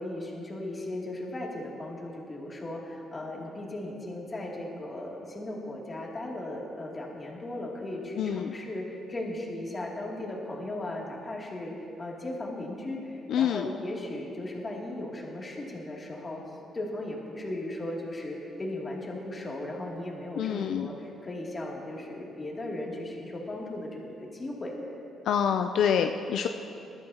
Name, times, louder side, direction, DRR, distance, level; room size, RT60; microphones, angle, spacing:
voice 1, 0.0-16.4 16.7-24.7, left 1 dB, 30° left, -2 dB, 2.6 m, -37 dB
voice 2, 8.2-8.5 13.3-13.7 20.4-20.9 25.3-26.5, left 8 dB, 75° left, 6 dB, 0.4 m, -26 dB
20.0 x 12.5 x 2.9 m, 2.8 s
cardioid pair, 90°, 0 cm